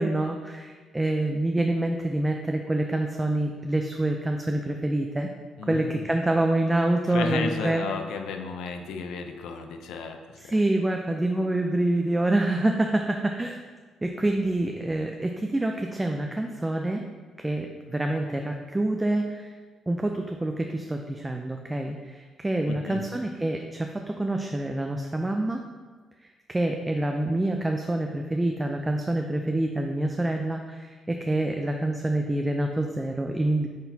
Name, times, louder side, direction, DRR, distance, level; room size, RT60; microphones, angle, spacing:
voice 1, 0.0-5.3 5.6-7.9 10.4-13.6 14.0-17.0 17.4-19.5 19.9-25.6 26.2-33.7, right 1 dB, 15° right, 3 dB, 0.4 m, -26 dB
voice 2, 5.6-6.1 7.1-10.5 22.7-23.0, left 5 dB, 85° left, 5 dB, 0.5 m, -33 dB
8.5 x 4.0 x 2.7 m, 1.5 s
cardioid pair, 90°, 0 cm